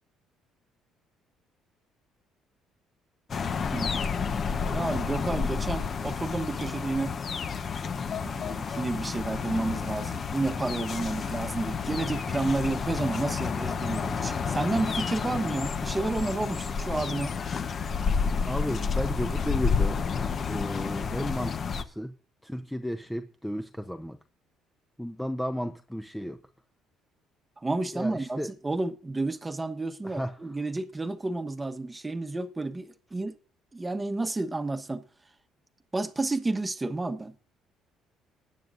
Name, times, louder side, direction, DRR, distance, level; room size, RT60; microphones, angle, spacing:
sound 1, 3.3-21.8, left 5 dB, 40° left, 1.0 m, -30 dB
voice 1, 4.7-7.2 8.2-17.3 27.6-33.3 33.7-35.0 35.9-37.3, right 2 dB, 15° right, 1.1 m, -31 dB
voice 2, 18.4-20.0 20.5-22.2 22.4-24.2 25.0-26.4 27.9-28.5 30.0-30.6, equal, 5° left, 0.7 m, -33 dB
19.5 x 9.5 x 2.6 m
cardioid pair, 95°, 0 cm